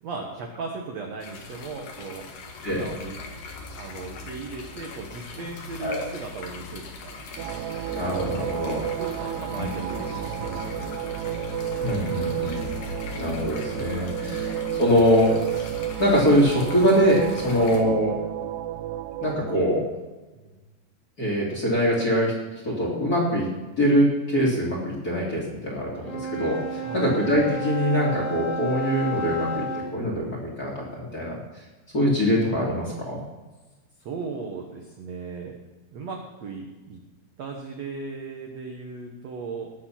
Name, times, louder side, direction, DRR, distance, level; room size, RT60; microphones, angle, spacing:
voice 1, 0.0-2.2 2.7-3.2 3.8-7.1 8.8-10.9 17.5-17.6 20.4-20.5 26.8-27.2 34.0-35.6 35.9-37.0 37.4-39.7, right 4 dB, 65° right, 1 dB, 1.7 m, -37 dB
sound 1, 1.2-17.8, left 4 dB, 65° left, 3.2 m, -39 dB
sound 2, 7.4-19.6, right 11 dB, 85° right, 2.7 m, -32 dB
voice 2, 7.9-8.8 9.6-9.7 11.8-12.7 13.2-15.7 16.0-18.1 19.2-19.8 21.2-22.3 22.6-23.5 23.8-31.4 31.9-33.2, equal, 25° left, -3 dB, 2.3 m, -23 dB
Wind instrument woodwind instrument, 26.0-29.9, equal, 45° left, 3.2 m, -31 dB
18.5 x 6.8 x 5.8 m, 1.2 s
omnidirectional pair, 4.7 m